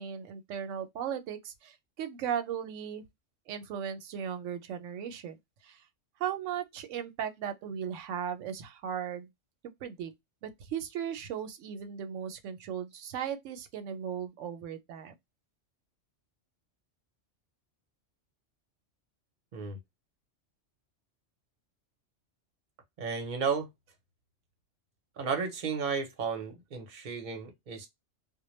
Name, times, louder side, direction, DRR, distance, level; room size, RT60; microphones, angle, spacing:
voice 1, 0.0-3.0 3.5-5.4 5.6-5.8 6.2-9.3 9.8-10.1 10.4-15.1, right 8 dB, 90° right, 0.9 m, -37 dB
voice 2, 23.0-23.7 25.2-27.9, right 5 dB, 45° right, 0.8 m, -33 dB
2.2 x 2.1 x 3.0 m
omnidirectional pair, 1.2 m